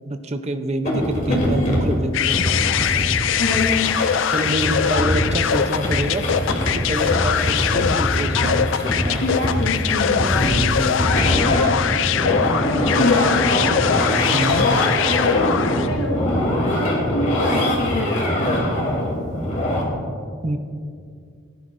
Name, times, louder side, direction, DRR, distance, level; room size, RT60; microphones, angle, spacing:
voice 1, 0.1-2.5 4.3-6.2 6.5-9.3 10.4-11.1 14.3-14.7 20.4-20.6, right 1 dB, 30° right, 7 dB, 0.6 m, -26 dB
sound 1, 0.9-19.8, left 1 dB, 35° left, 2.7 m, -23 dB
sound 2, 2.1-16.0, left 8 dB, 65° left, 0.4 m, -22 dB
voice 2, 3.4-3.9 8.3-8.6 9.2-10.6 11.0-13.8 14.6-18.4, left 1 dB, 80° left, -2 dB, 1.4 m, -26 dB
17.0 x 10.5 x 2.6 m, 2.3 s
head